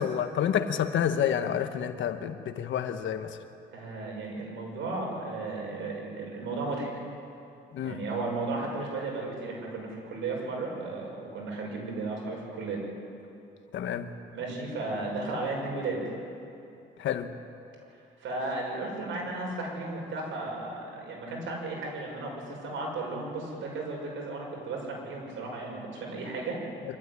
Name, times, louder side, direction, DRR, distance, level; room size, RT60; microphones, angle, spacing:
voice 1, 0.0-3.4 7.7-8.0 13.7-14.1 17.0-17.3, left 9 dB, 70° left, 8 dB, 1.4 m, -29 dB
voice 2, 3.7-6.9 7.8-12.8 14.3-16.0 18.2-26.6, right 3 dB, 75° right, -1 dB, 6.7 m, -34 dB
25.0 x 13.5 x 9.9 m, 2.7 s
cardioid pair, 90°, 20 cm